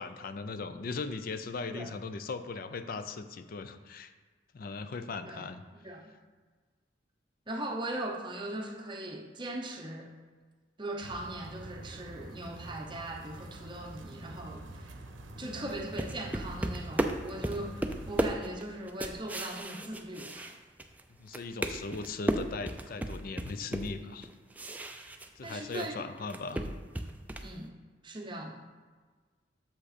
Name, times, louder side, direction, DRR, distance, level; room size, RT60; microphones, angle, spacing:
voice 1, 0.0-4.1 4.5-5.6 15.4-15.7 21.2-24.3 25.4-26.7, left 4 dB, 50° left, 10 dB, 0.4 m, -39 dB
voice 2, 5.8-6.1 7.5-10.1 10.8-15.0 15.4-20.5 25.4-25.9 26.5-26.7 27.4-27.7 28.0-28.6, right 1 dB, 25° right, 1 dB, 0.7 m, -39 dB
sound 1, 11.0-18.4, right 2 dB, 85° right, 0.7 m, -47 dB
sound 2, 15.7-21.0 21.3-25.9 26.2-27.5, right 1 dB, 10° right, 0.4 m, -34 dB
7.1 x 5.4 x 4.1 m, 1.4 s
head